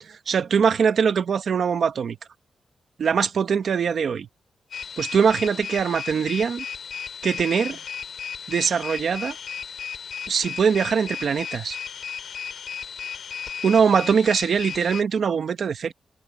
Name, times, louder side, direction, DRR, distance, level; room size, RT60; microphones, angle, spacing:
voice 1, 0.0-2.2 3.0-4.3 5.0-6.6 7.2-7.8 8.5-9.4 10.3-11.8 13.6-15.9, right 6 dB, 60° right, 1.1 m, -22 dB
sound 1, 4.7-15.0, left 7 dB, 65° left, 2.4 m, -35 dB
wide cardioid pair, 145°, 0 cm